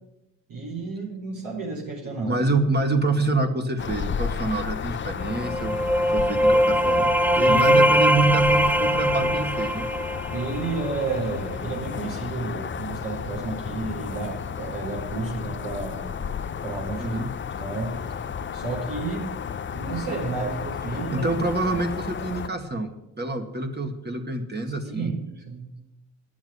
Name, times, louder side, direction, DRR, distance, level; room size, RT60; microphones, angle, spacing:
voice 1, 0.5-2.4 7.4-7.8 10.3-16.0 16.6-17.2 17.6-18.0 18.5-19.3 19.7-21.3 24.8-25.7, right 3 dB, 65° right, -2 dB, 4.5 m, -31 dB
voice 2, 2.3-5.8 6.1-9.9 17.0-17.3 21.1-22.9 23.2-25.2, right 3 dB, 25° right, 5 dB, 2.1 m, -26 dB
sound 1, 3.8-22.5, left 7 dB, 35° left, 0.7 m, -33 dB
sound 2, 5.3-11.0, equal, 5° right, 0.7 m, -21 dB
11.0 x 7.2 x 9.5 m, 0.89 s
supercardioid pair, 65°, 36 cm